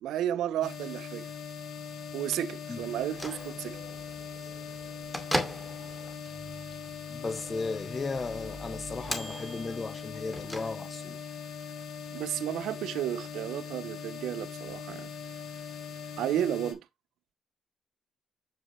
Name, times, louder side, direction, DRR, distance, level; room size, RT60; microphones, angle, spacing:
voice 1, 0.0-1.3 2.1-3.8 12.1-15.1 16.2-16.8, right 11 dB, 85° right, 0.6 m, -32 dB
sound 1, 0.6-16.7, left 6 dB, 75° left, 3.6 m, -41 dB
Bell / Microwave oven, 2.9-11.2, equal, ahead, 2.3 m, -39 dB
voice 2, 7.1-11.2, left 3 dB, 30° left, 0.9 m, -35 dB
7.5 x 7.2 x 3.1 m
cardioid pair, 90°, 0 cm